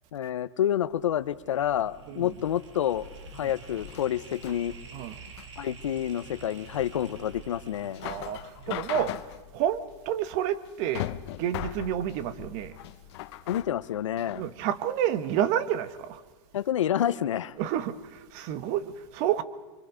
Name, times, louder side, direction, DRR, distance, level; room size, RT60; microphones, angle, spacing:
voice 1, 0.1-3.1 3.3-4.7 5.6-8.0 13.5-14.4 16.5-17.5, left 10 dB, 90° left, 0.9 m, -28 dB
sound 1, 0.7-9.8, right 4 dB, 75° right, 3.3 m, -48 dB
sound 2, 2.9-14.5, left 14 dB, 65° left, 1.0 m, -40 dB
voice 2, 8.0-9.1 9.5-11.1 11.4-12.7 14.3-16.2 17.6-19.4, right 10 dB, 50° right, 1.5 m, -29 dB
26.0 x 24.5 x 5.1 m
hypercardioid pair, 125°, 15 cm